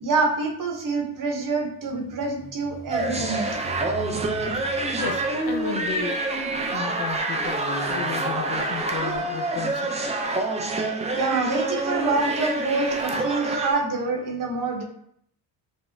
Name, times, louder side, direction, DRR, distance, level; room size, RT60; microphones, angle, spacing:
voice 1, 0.0-3.6 11.1-14.8, right 3 dB, 45° right, 2 dB, 0.8 m, -26 dB
sound 1, 1.8-6.5 7.3-10.7, left 2 dB, 5° left, 0.9 m, -40 dB
sound 2, 2.9-13.7, right 2 dB, 15° right, 0.3 m, -27 dB
voice 2, 5.0-6.2 6.7-7.6 7.9-10.0, left 6 dB, 45° left, 4 dB, 0.5 m, -33 dB
4.9 x 2.0 x 2.6 m, 0.70 s
cardioid pair, 80°, 48 cm